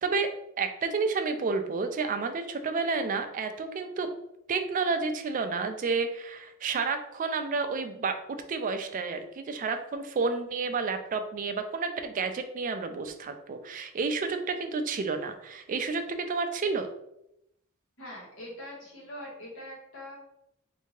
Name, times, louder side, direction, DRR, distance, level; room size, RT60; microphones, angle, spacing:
voice 1, 0.6-4.1 4.5-8.2 8.5-16.9, right 4 dB, 35° right, 7 dB, 0.3 m, -30 dB
voice 2, 18.0-20.2, left 1 dB, 65° left, -4 dB, 1.3 m, -43 dB
3.4 x 2.7 x 3.1 m, 0.81 s
head